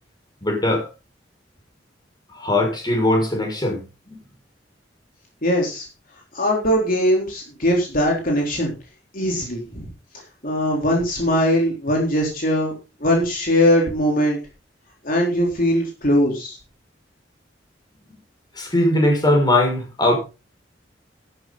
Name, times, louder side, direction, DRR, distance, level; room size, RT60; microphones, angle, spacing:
voice 1, 0.4-0.9 2.3-4.2 18.5-20.1, left 1 dB, 25° left, 6.4 m, -20 dB
voice 2, 5.4-5.9 6.3-8.7 9.1-9.9 10.4-12.7 13.0-14.4 15.0-16.6, equal, 50° left, 3.9 m, -20 dB
12.5 x 12.0 x 4.1 m
head